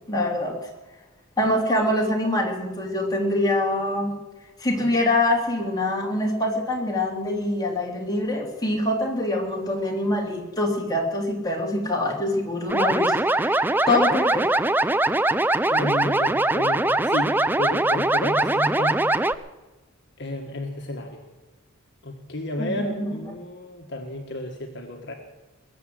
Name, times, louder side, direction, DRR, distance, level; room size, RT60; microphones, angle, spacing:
voice 1, 0.1-0.6 1.4-4.1 4.6-14.4 22.6-23.2, left 1 dB, 20° left, -1 dB, 3.3 m, -24 dB
sound 1, 12.7-19.3, right 2 dB, 10° right, 0.5 m, -22 dB
voice 2, 15.6-17.3 17.6-19.0 20.2-21.3 22.0-25.1, left 1 dB, 55° left, 2 dB, 1.7 m, -32 dB
21.0 x 7.9 x 7.8 m, 1.2 s
head